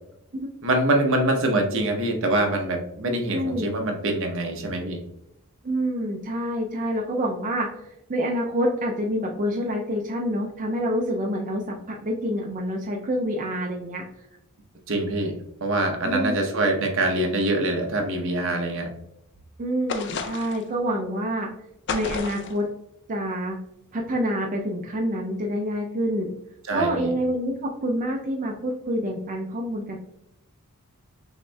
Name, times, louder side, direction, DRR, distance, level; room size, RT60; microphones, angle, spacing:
voice 1, 0.6-5.0 14.9-18.9 26.7-27.1, right 1 dB, 60° right, 3 dB, 0.7 m, -24 dB
voice 2, 3.3-3.7 5.6-7.8 8.1-14.0 16.0-16.3 19.6-21.5 21.9-22.7 23.1-23.6 23.9-26.3 26.7-30.0, equal, 35° right, 0 dB, 0.4 m, -27 dB
sound 1, 19.9-20.7 21.9-22.6, left 5 dB, 50° left, 0.4 m, -31 dB
6.2 x 2.6 x 2.2 m, 0.82 s
head